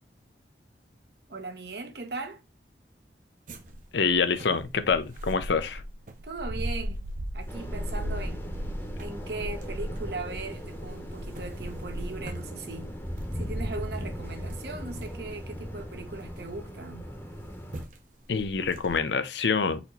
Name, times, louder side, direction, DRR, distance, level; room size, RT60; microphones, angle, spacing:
voice 1, 1.3-2.4 6.2-7.0 7.3-8.4 9.0-12.9 13.3-17.1, right 3 dB, 70° right, 0.9 m, -38 dB
sound 1, 3.5-16.6 17.3-17.5 17.7-18.0 18.3-19.0, equal, 45° right, 0.7 m, -38 dB
voice 2, 3.9-5.8 18.3-19.8, left 5 dB, 85° left, 0.6 m, -26 dB
sound 2, 7.5-17.8, equal, 15° left, 0.8 m, -38 dB
4.2 x 2.9 x 4.2 m
head